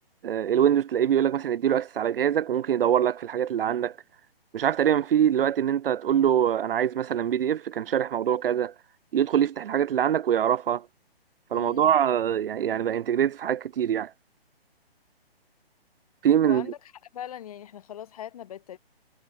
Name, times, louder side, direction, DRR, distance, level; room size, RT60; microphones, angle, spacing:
voice 1, 0.2-3.9 4.5-8.7 9.1-10.9 11.5-14.1 16.2-16.7, right 9 dB, 65° right, 0.4 m, -24 dB
voice 2, 11.5-12.0 16.4-16.8 17.1-18.8, left 10 dB, 35° left, 1.5 m, -40 dB
hypercardioid pair, 155°, 31 cm